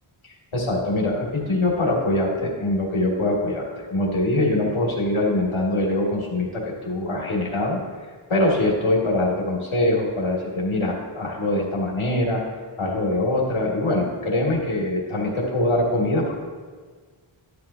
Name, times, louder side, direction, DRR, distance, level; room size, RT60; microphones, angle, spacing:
voice 1, 0.5-7.8 8.3-12.4 12.8-16.4, left 1 dB, 70° left, -2 dB, 2.6 m, -23 dB
12.5 x 11.5 x 2.9 m, 1.5 s
wide cardioid pair, 90°, 50 cm